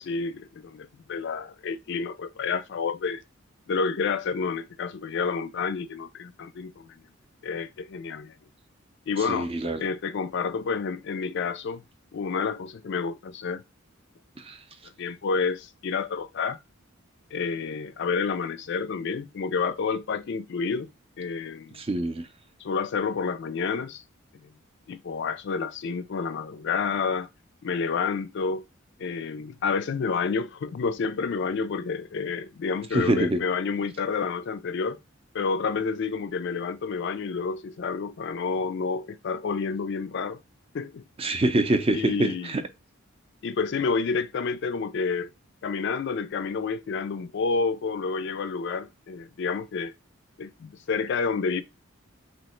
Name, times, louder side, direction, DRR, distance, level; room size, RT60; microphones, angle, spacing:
voice 1, 0.0-3.2 3.7-7.0 7.4-8.3 9.1-9.5 9.8-11.8 12.1-13.6 15.0-16.6 17.3-20.9 21.2-21.8 22.6-24.0 24.4-24.5 24.9-27.3 27.6-28.6 29.0-35.0 35.3-40.4 40.7-41.0 41.9-42.5 43.4-45.3 45.6-49.9 50.4-51.6, left 5 dB, 55° left, 0.4 m, -29 dB
voice 2, 9.3-9.8 14.4-14.6 21.7-22.3 32.9-33.4 41.2-42.6, right 1 dB, 30° right, 0.5 m, -25 dB
3.1 x 2.8 x 4.3 m
head